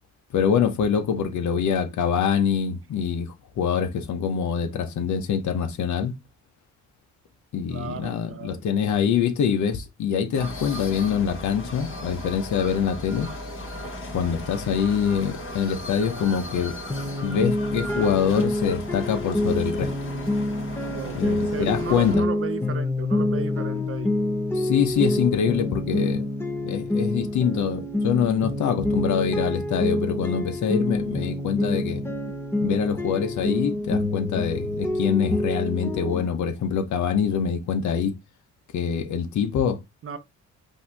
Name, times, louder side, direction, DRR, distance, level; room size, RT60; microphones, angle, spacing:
voice 1, 0.3-6.1 7.5-13.3 14.1-16.7 17.2-19.9 21.1-22.2 24.5-26.3 26.6-32.0 32.6-38.1 38.7-39.8, left 7 dB, 70° left, 1.1 m, -25 dB
voice 2, 1.0-1.6 7.7-9.0 20.9-24.2 40.0-40.2, right 6 dB, 45° right, 0.8 m, -35 dB
sound 1, 10.3-22.2, left 1 dB, 45° left, 2.1 m, -36 dB
sound 2, 16.9-36.3, left 1 dB, 10° left, 1.0 m, -27 dB
5.4 x 2.9 x 3.4 m
cardioid pair, 90°, 30 cm